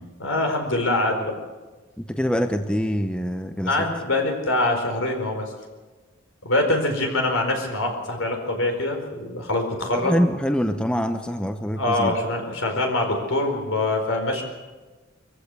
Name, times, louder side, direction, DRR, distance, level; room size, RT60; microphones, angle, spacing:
voice 1, 0.2-1.3 3.7-5.5 6.4-10.1 11.8-14.4, left 2 dB, 75° left, 4 dB, 4.5 m, -24 dB
voice 2, 2.0-3.9 9.9-12.2, equal, 5° left, 7 dB, 0.8 m, -25 dB
22.5 x 15.0 x 8.2 m, 1.3 s
head